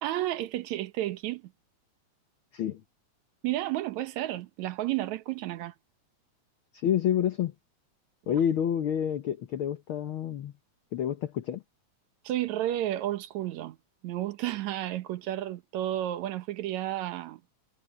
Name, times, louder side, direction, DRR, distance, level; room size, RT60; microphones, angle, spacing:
voice 1, 0.0-1.5 3.4-5.7 12.2-13.8 14.0-17.4, right 14 dB, 75° right, 2.3 m, -32 dB
voice 2, 6.7-7.5 8.3-10.5 10.9-11.6, left 9 dB, 60° left, 1.5 m, -28 dB
omnidirectional pair, 3.3 m